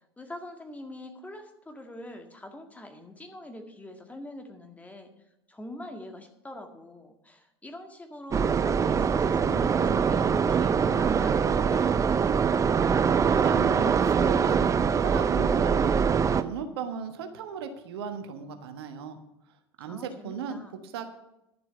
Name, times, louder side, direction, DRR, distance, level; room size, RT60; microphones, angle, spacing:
voice 1, 0.2-5.1 5.5-12.5 19.9-20.7, left 1 dB, 10° left, 5 dB, 1.9 m, -43 dB
sound 1, 8.3-16.4, right 6 dB, 20° right, 0.6 m, -23 dB
voice 2, 13.2-14.6 15.0-16.0 16.3-19.2 19.8-21.0, right 7 dB, 65° right, 7 dB, 1.4 m, -37 dB
11.5 x 7.5 x 7.0 m, 0.86 s
figure-of-eight pair, 75°, 14 cm